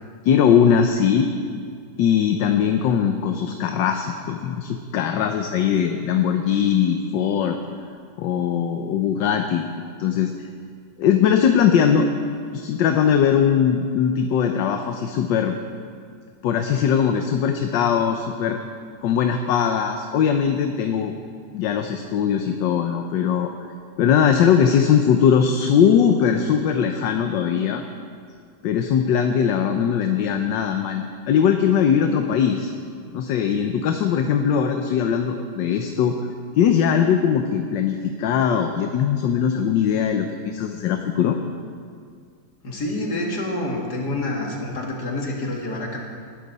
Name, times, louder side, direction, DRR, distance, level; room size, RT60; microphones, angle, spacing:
voice 1, 0.2-1.3 2.0-7.6 8.2-9.7 10.0-10.5 11.0-12.1 12.5-15.5 16.4-18.6 19.0-21.1 21.5-23.5 24.0-27.8 28.6-32.7 33.1-36.3 36.6-41.4, left 8 dB, 75° left, 5 dB, 1.4 m, -20 dB
voice 2, 42.6-46.0, left 1 dB, 60° left, -1 dB, 2.6 m, -27 dB
20.0 x 12.0 x 4.1 m, 2.2 s
omnidirectional pair, 2.0 m